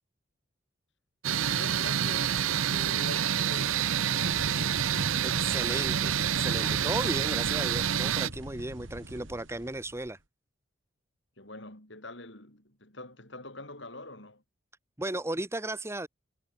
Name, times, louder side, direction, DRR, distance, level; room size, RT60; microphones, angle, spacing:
sound 1, 1.2-8.3, right 9 dB, 85° right, 0.7 m, -28 dB
voice 1, 1.3-4.9 11.4-14.4, left 2 dB, 60° left, 6.1 m, -45 dB
sound 2, 4.2-10.1, right 1 dB, 70° right, 4.8 m, -40 dB
voice 2, 5.2-10.2 15.0-16.1, right 1 dB, 15° right, 0.9 m, -35 dB
head